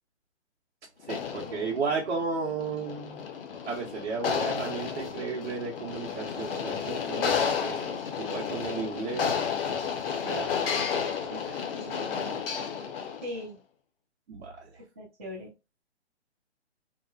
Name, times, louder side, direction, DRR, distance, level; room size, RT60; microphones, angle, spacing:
sound 1, 1.0-13.4, left 6 dB, 55° left, 0.6 m, -32 dB
voice 1, 1.1-3.3 3.7-9.3 10.2-10.9 11.3-11.6 14.3-14.7, right 4 dB, 60° right, -3 dB, 0.8 m, -34 dB
voice 2, 11.7-12.4 13.2-13.6 15.0-15.5, equal, 15° right, -5 dB, 0.3 m, -40 dB
2.9 x 2.1 x 2.2 m, 0.28 s
figure-of-eight pair, 135°, 34 cm